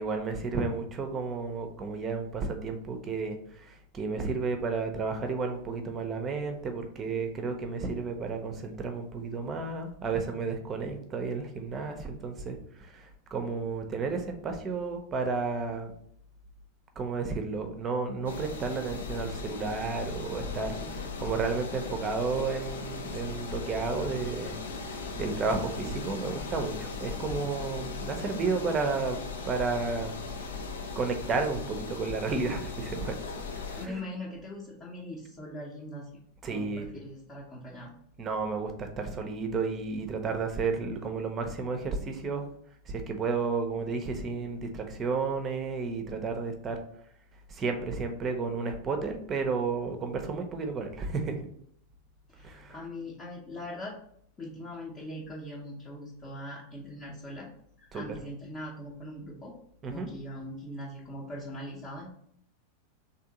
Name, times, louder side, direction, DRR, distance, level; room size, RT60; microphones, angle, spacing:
voice 1, 0.0-15.9 17.0-20.7 21.2-24.6 24.8-29.2 29.4-30.1 31.0-33.1 33.6-34.0 36.4-36.9 38.2-42.4 42.9-46.8 47.5-51.4 52.4-52.7 57.9-58.0 59.8-60.1, right 4 dB, 25° right, 5 dB, 0.7 m, -32 dB
sound 1, 18.3-33.9, left 4 dB, 65° left, 0.5 m, -38 dB
voice 2, 20.6-21.0 28.4-28.9 33.8-36.1 36.5-37.9 52.3-53.9 54.4-57.5 57.8-59.5 59.9-62.1, left 1 dB, 20° left, -5 dB, 0.8 m, -41 dB
3.6 x 2.7 x 3.9 m, 0.67 s
figure-of-eight pair, 90°, 0 cm